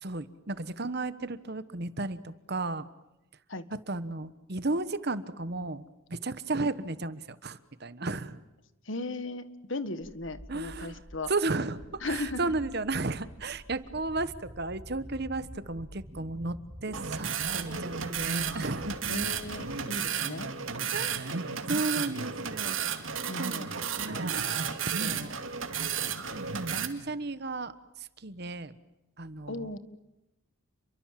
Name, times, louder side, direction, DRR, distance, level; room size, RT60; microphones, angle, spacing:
voice 1, 0.0-2.9 3.9-8.4 10.5-11.0 11.3-16.5 16.8-19.1 20.9-22.8 23.4-24.4 24.8-25.4 26.3-26.4 26.7-28.7 29.2-29.7, right 2 dB, 50° right, 14 dB, 1.2 m, -34 dB
voice 2, 8.8-11.3 12.0-12.5 19.1-20.5 23.3-23.7 29.5-29.8, left 2 dB, 60° left, 12 dB, 1.6 m, -36 dB
sound 1, 10.0-20.0, equal, 20° right, 3.9 m, -47 dB
sound 2, 16.9-26.9, right 6 dB, 70° right, 2.5 m, -33 dB
29.5 x 23.5 x 7.6 m, 0.97 s
head